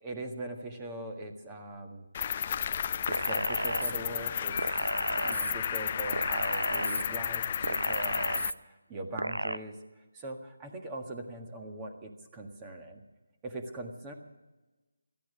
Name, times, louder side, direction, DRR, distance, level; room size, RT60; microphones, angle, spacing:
voice 1, 0.0-2.0 3.3-4.5 5.2-13.0 13.4-14.1, right 1 dB, 15° right, 3 dB, 1.6 m, -41 dB
Cricket, 2.1-8.5, left 8 dB, 30° left, 0.5 m, -32 dB
sound 1, 3.1-3.9 4.6-5.5 6.1-7.0 7.6-8.5 9.2-9.6, right 2 dB, 85° right, 0.7 m, -32 dB
17.0 x 14.0 x 6.1 m, 1.1 s
figure-of-eight pair, 160°, 0 cm